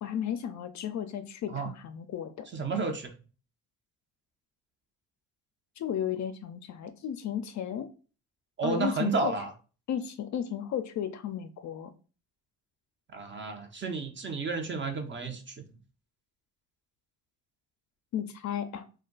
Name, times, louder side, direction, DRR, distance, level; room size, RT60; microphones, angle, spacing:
voice 1, 0.0-2.5 5.8-7.9 8.6-9.3 9.9-11.9 18.1-18.8, left 9 dB, 50° left, 8 dB, 0.5 m, -34 dB
voice 2, 2.5-3.1 8.6-9.5 13.1-15.6, right 4 dB, 30° right, 4 dB, 0.8 m, -32 dB
2.3 x 2.2 x 3.8 m, 0.36 s
supercardioid pair, 70°, 36 cm